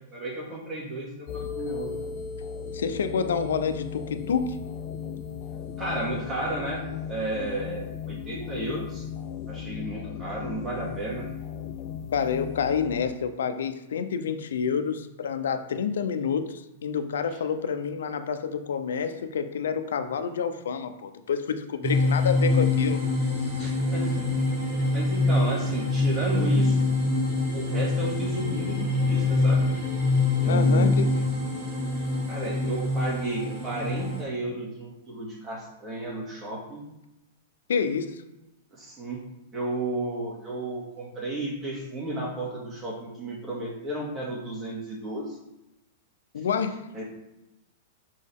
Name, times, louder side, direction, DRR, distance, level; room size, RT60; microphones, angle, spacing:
voice 1, 0.1-1.9 5.8-9.1 9.5-11.3 23.6-24.3 24.9-26.9 27.5-29.6 30.4-31.2 32.3-36.8 38.7-39.2 39.5-45.4 46.9-47.0, right 2 dB, 20° right, -3 dB, 2.2 m, -33 dB
sound 1, 1.3-13.0, left 7 dB, 40° left, 0.5 m, -36 dB
voice 2, 2.7-4.6 12.1-23.0 30.5-31.1 37.7-38.2 46.3-47.0, left 6 dB, 85° left, 8 dB, 0.7 m, -28 dB
sound 2, 21.8-34.2, left 2 dB, 40° right, 1.7 m, -25 dB
6.3 x 5.4 x 3.7 m, 0.94 s
hypercardioid pair, 145°, 0 cm